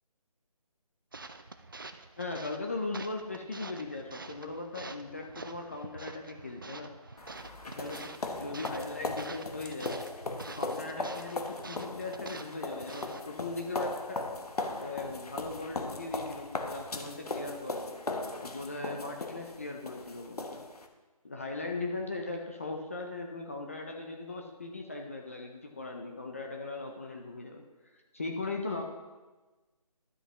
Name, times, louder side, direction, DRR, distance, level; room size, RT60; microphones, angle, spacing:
sound 1, 1.1-13.3, right 3 dB, 35° right, 0.3 m, -47 dB
voice 1, 2.2-6.9 7.6-10.0 10.5-14.3 14.8-17.8 18.4-20.6 21.2-27.6 28.1-28.8, left 3 dB, 20° left, 2 dB, 0.5 m, -39 dB
sound 2, 7.2-20.9, left 2 dB, 75° left, 1.0 m, -38 dB
12.0 x 7.8 x 3.0 m, 1.2 s
figure-of-eight pair, 160°, 20 cm